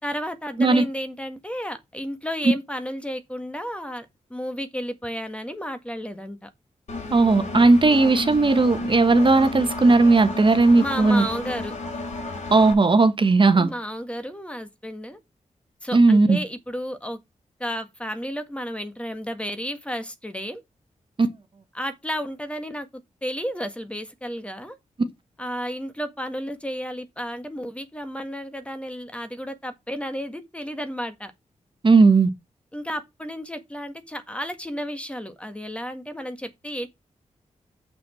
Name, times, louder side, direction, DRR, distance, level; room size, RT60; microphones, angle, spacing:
voice 1, 0.0-6.5 10.7-11.7 13.5-15.2 15.8-17.2 17.6-20.6 21.7-24.8 25.4-31.3 32.7-36.9, equal, 10° left, 1.7 m, -32 dB
Engine, 6.9-12.7, left 2 dB, 60° left, 5.0 m, -32 dB
voice 2, 7.1-11.3 12.5-13.7 15.9-16.4 31.8-32.3, right 3 dB, 40° right, 1.4 m, -17 dB
7.2 x 6.0 x 6.2 m
cardioid pair, 80°, 13 cm